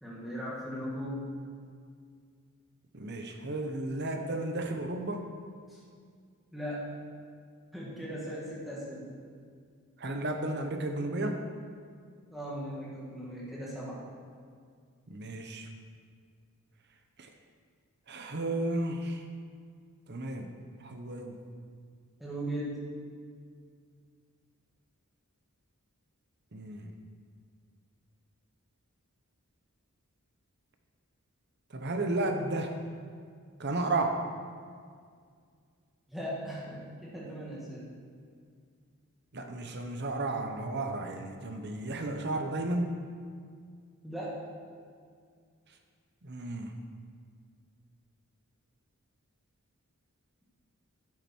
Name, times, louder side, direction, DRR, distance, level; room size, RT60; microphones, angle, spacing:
voice 1, 0.0-1.3 5.7-5.8 6.5-7.0 7.7-9.1 12.3-14.0 22.2-22.8 36.1-37.9 44.0-44.4, equal, ahead, -7 dB, 2.0 m, -38 dB
voice 2, 2.9-5.3 10.0-11.4 15.1-15.7 17.2-17.3 18.1-19.2 20.1-20.5 20.8-21.5 26.5-26.9 31.7-32.7 33.6-34.2 39.3-43.0 46.2-46.7, right 2 dB, 50° right, 5 dB, 0.9 m, -33 dB
11.0 x 8.7 x 4.5 m, 2.1 s
head